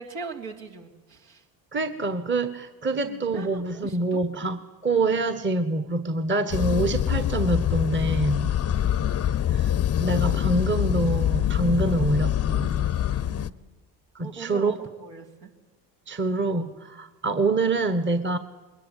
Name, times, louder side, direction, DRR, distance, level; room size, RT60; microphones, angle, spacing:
voice 1, 0.0-1.4 3.0-4.5 8.6-9.0 13.2-13.6 14.2-15.5 16.3-16.4, right 4 dB, 65° right, 3 dB, 3.2 m, -41 dB
voice 2, 1.7-8.5 9.5-9.7 10.0-12.9 14.1-14.7 16.1-18.4, right 2 dB, 25° right, 11 dB, 1.5 m, -26 dB
sound 1, 6.5-13.5, left 11 dB, 30° left, 0.8 m, -25 dB
22.0 x 20.0 x 9.4 m, 1.2 s
hypercardioid pair, 65°, 48 cm